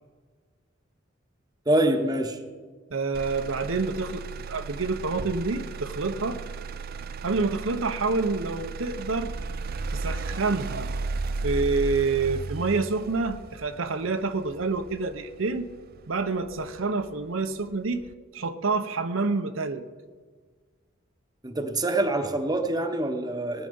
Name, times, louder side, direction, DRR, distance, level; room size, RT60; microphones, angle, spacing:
voice 1, 1.7-2.4 21.4-23.7, right 1 dB, 20° right, 6 dB, 1.0 m, -25 dB
voice 2, 2.9-6.4 7.2-9.3 9.9-10.9 11.4-15.7 16.1-18.0 18.3-19.8, right 3 dB, 80° right, 8 dB, 0.8 m, -28 dB
Motor vehicle (road), 3.1-17.2 17.6-18.1, right 4 dB, 50° right, 0.5 m, -35 dB
18.5 x 9.9 x 5.4 m, 1.5 s
head